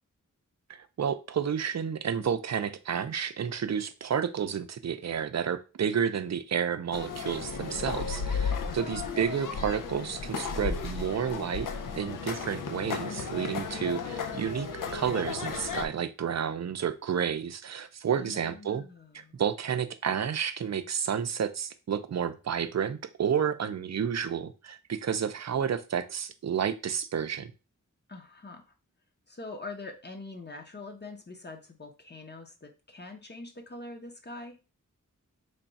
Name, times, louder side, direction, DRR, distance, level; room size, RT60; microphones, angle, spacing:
voice 1, 0.7-11.7 11.9-18.8 19.1-27.5, right 8 dB, 55° right, 10 dB, 0.5 m, -31 dB
sound 1, 6.9-15.9, left 5 dB, 75° left, 0.5 m, -34 dB
voice 2, 8.6-9.2 18.2-19.4 28.1-28.6 29.3-34.6, left 2 dB, 30° left, 4 dB, 0.8 m, -44 dB
3.3 x 2.3 x 4.0 m, 0.31 s
wide cardioid pair, 60°, 32 cm